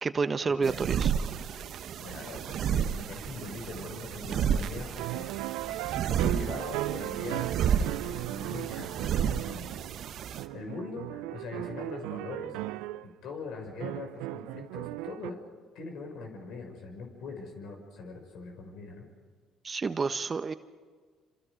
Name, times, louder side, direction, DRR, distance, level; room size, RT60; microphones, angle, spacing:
voice 1, 0.0-1.1 19.6-20.5, right 4 dB, 35° right, 11 dB, 1.2 m, -29 dB
sound 1, 0.6-10.4, right 8 dB, 60° right, 1.2 m, -32 dB
voice 2, 2.0-5.3 6.1-9.8 10.4-12.7 13.0-15.4 15.7-19.0, left 4 dB, 65° left, 3 dB, 6.2 m, -42 dB
sound 2, 5.0-10.0 10.4-13.1 13.8-15.3, right 16 dB, 75° right, 0.6 m, -36 dB
28.0 x 27.0 x 5.3 m, 1.5 s
hypercardioid pair, 55°, 0 cm